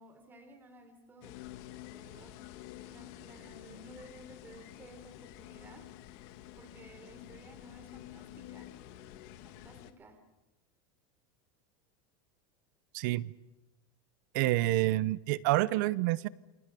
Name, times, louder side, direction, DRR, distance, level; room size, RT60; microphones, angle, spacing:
voice 1, 0.0-2.5 2.8-5.9 6.6-8.8 9.4-10.2, right 1 dB, 20° right, 8 dB, 3.6 m, -55 dB
sound 1, 1.2-9.9, left 14 dB, 55° left, 2.0 m, -49 dB
voice 2, 12.9-13.3 14.3-16.3, right 18 dB, 60° right, 19 dB, 0.9 m, -28 dB
28.5 x 28.0 x 6.8 m, 0.98 s
supercardioid pair, 145°, 11 cm